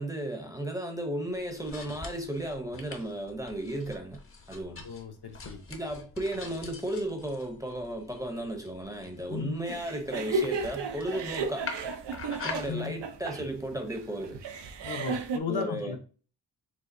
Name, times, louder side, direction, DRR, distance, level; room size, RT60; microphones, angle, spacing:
voice 1, 0.0-4.2 4.5-4.8 5.7-11.7 12.4-14.4 15.5-16.0, right 1 dB, 10° right, 0.6 m, -34 dB
sound 1, 1.3-12.7, left 4 dB, 35° left, 0.7 m, -45 dB
voice 2, 4.8-5.6 9.3-9.5 12.7-12.9 14.8-16.0, left 6 dB, 65° left, 0.9 m, -35 dB
sound 2, 9.7-15.4, right 4 dB, 85° right, 0.7 m, -34 dB
5.1 x 3.6 x 2.6 m
wide cardioid pair, 175°, 41 cm